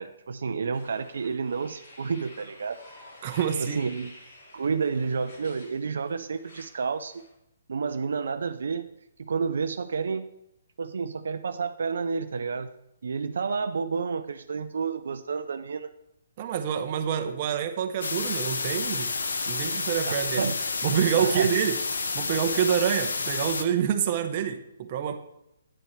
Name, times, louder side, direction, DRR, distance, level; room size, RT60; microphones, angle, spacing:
voice 1, 0.0-2.8 3.6-4.1 4.5-7.2 7.7-8.9 9.2-10.3 10.8-12.7 13.0-15.9 20.0-20.5 21.2-21.5, right 5 dB, 75° right, 9 dB, 0.6 m, -30 dB
sound 1, 0.7-7.3, left 1 dB, 60° left, 3.9 m, -50 dB
voice 2, 3.2-3.8 16.4-19.1 19.5-20.5 20.8-21.8 22.1-25.1, right 9 dB, 35° right, 6 dB, 0.9 m, -27 dB
sound 2, 18.0-23.6, left 4 dB, 85° left, 0.9 m, -30 dB
9.2 x 8.9 x 3.2 m, 0.83 s
hypercardioid pair, 160°, 0 cm